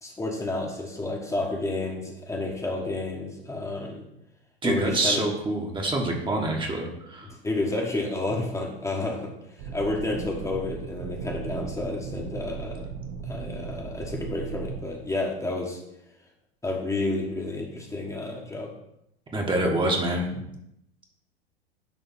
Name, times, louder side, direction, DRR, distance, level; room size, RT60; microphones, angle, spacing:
voice 1, 0.0-4.0 4.6-5.2 7.3-12.8 13.3-15.8 16.6-18.7, left 2 dB, 10° left, -1 dB, 1.4 m, -30 dB
voice 2, 4.6-7.3 19.3-20.4, right 1 dB, 15° right, 0 dB, 1.5 m, -26 dB
sound 1, 9.6-14.8, right 6 dB, 40° right, 0.9 m, -36 dB
10.5 x 3.9 x 5.7 m, 0.80 s
figure-of-eight pair, 85°, 31 cm